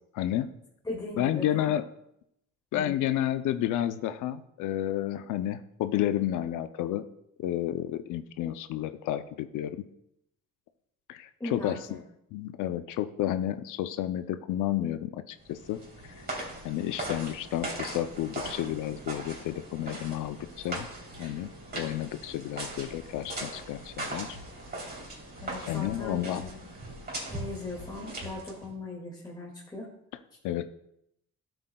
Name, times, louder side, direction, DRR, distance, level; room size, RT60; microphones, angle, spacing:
voice 1, 0.1-0.5 1.2-1.8 2.7-7.0 7.4-9.8 11.1-12.0 12.3-15.8 16.6-20.9 21.2-24.4 25.7-26.5 30.4-30.6, left 12 dB, 85° left, 11 dB, 0.5 m, -31 dB
voice 2, 0.8-1.7 2.7-3.0 11.4-11.8 25.4-26.6 27.3-29.9, left 2 dB, 15° left, -4 dB, 2.0 m, -39 dB
sound 1, 15.4-28.7, right 1 dB, 35° right, 3.1 m, -40 dB
12.5 x 7.9 x 2.3 m, 0.78 s
cardioid pair, 90°, 30 cm